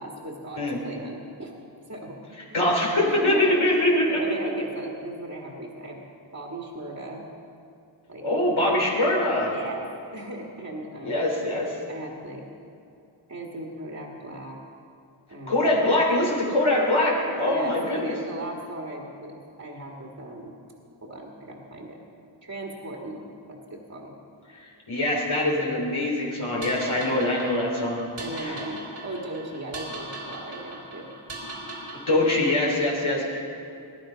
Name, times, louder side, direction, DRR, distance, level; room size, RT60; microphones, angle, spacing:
voice 1, 0.0-1.5 1.9-2.2 2.5-2.6 3.0-6.0 6.3-7.2 8.1-8.3 9.5-9.8 10.1-11.2 11.9-12.5 13.3-14.6 15.3-15.8 17.5-20.5 21.0-22.0 22.4-23.2 23.5-24.1 27.1-27.3 28.2-31.1, right 2 dB, 35° right, -1 dB, 1.9 m, -37 dB
voice 2, 2.5-4.2 8.2-9.5 11.0-11.7 15.5-18.1 24.5-28.0 28.4-28.6 32.1-33.4, left 1 dB, 85° left, -2 dB, 3.3 m, -23 dB
sound 1, 26.6-32.9, right 2 dB, 80° right, 3.3 m, -39 dB
19.5 x 10.5 x 5.1 m, 2.6 s
wide cardioid pair, 40°, 47 cm